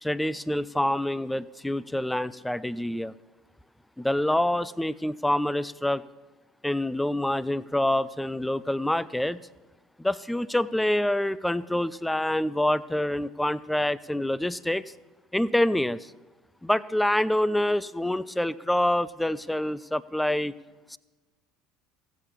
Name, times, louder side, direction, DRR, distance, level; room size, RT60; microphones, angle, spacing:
voice 1, 0.0-3.1 4.0-6.0 6.6-9.4 10.0-14.8 15.3-16.0 16.6-20.5 20.9-21.0, left 1 dB, 5° left, 17 dB, 0.4 m, -26 dB
15.5 x 8.1 x 7.3 m, 1.2 s
figure-of-eight pair, 65°, 0 cm